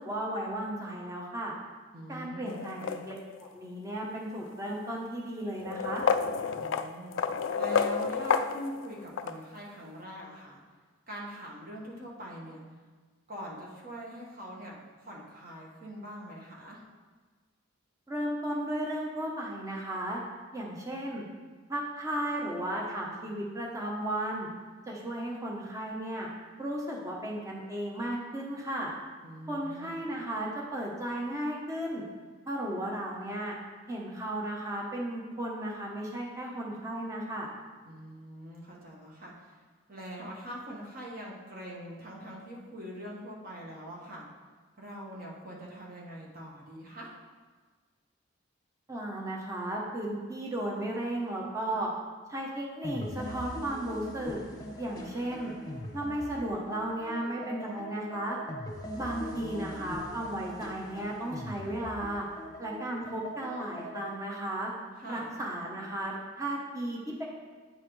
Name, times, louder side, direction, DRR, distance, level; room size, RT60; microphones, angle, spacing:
voice 1, 0.0-1.5 2.1-3.1 3.4-6.0 18.1-20.2 20.5-21.3 21.7-24.5 24.9-26.3 26.6-28.9 29.5-32.0 32.5-33.5 33.9-37.5 48.9-51.9 52.3-54.4 54.8-55.6 55.9-58.4 58.9-62.3 62.6-64.7 65.1-67.2, right 1 dB, 15° right, -2 dB, 0.9 m, -35 dB
voice 2, 1.9-3.0 6.5-10.6 11.1-12.6 13.3-16.8 29.2-30.1 37.8-39.5 39.9-44.3 44.8-47.1 59.0-59.9 65.0-65.3, equal, 45° right, -3 dB, 1.4 m, -43 dB
sound 1, 2.5-3.5 4.5-4.6 5.6-9.4, left 6 dB, 65° left, 0.3 m, -30 dB
sound 2, 52.8-64.1, equal, 20° left, 0.9 m, -42 dB
9.0 x 5.6 x 3.2 m, 1.4 s
head